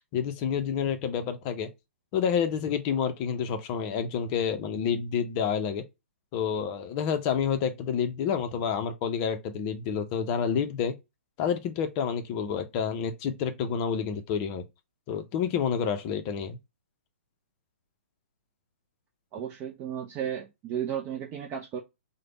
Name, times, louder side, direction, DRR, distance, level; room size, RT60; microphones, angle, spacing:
voice 1, 0.1-1.7 2.1-5.8 6.3-11.0 11.4-14.6 15.1-16.6, left 7 dB, 30° left, 0.5 m, -29 dB
voice 2, 19.3-21.8, right 9 dB, 25° right, 0.5 m, -34 dB
3.3 x 2.1 x 3.7 m
hypercardioid pair, 140°, 7 cm